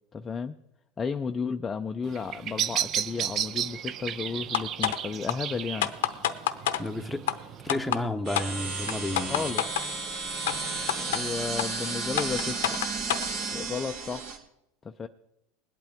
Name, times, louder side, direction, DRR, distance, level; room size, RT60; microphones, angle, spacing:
voice 1, 0.1-0.5 1.0-5.9 9.1-9.6 11.0-12.8 13.5-14.3 14.8-15.1, left 5 dB, 20° left, 6 dB, 0.5 m, -33 dB
Bird vocalization bird call bird song, 2.0-8.0, right 9 dB, 40° right, 0.5 m, -34 dB
sound 1, 4.5-5.0 5.3-5.4 5.8-6.8 7.3-7.4 7.7-8.0 8.3-8.5 8.9-9.9 10.5-10.6 10.9-11.2 11.6-11.7 12.2-13.3, left 12 dB, 90° left, 0.8 m, -27 dB
voice 2, 6.8-7.3 7.6-9.5, left 1 dB, 5° left, 5 dB, 0.9 m, -31 dB
sound 2, 8.2-14.4, right 4 dB, 60° right, 2.6 m, -33 dB
21.0 x 8.7 x 3.5 m, 0.85 s
supercardioid pair, 125°, 0 cm